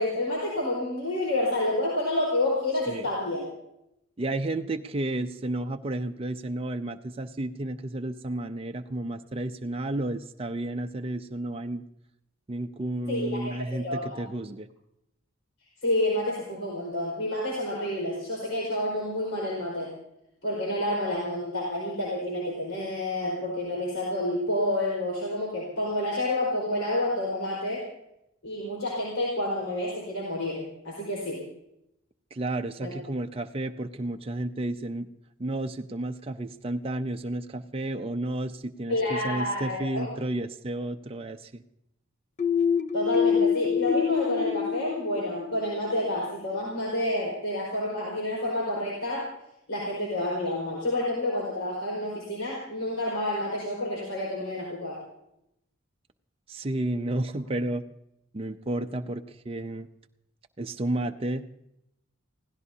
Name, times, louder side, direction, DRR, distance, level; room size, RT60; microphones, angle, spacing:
voice 1, 0.0-3.5 13.1-14.2 15.8-19.9 20.4-27.8 28.4-31.4 32.8-32.9 38.9-40.1 42.9-49.3 49.7-55.0, left 1 dB, 70° left, -4 dB, 4.6 m, -29 dB
voice 2, 4.2-11.8 12.5-14.7 32.3-35.1 35.4-41.6 56.5-57.8 58.3-59.9 60.6-61.5, right 1 dB, 30° right, 5 dB, 0.5 m, -32 dB
sound 1, 42.4-46.0, left 7 dB, 35° left, 0.6 m, -26 dB
27.5 x 16.5 x 2.8 m, 0.82 s
head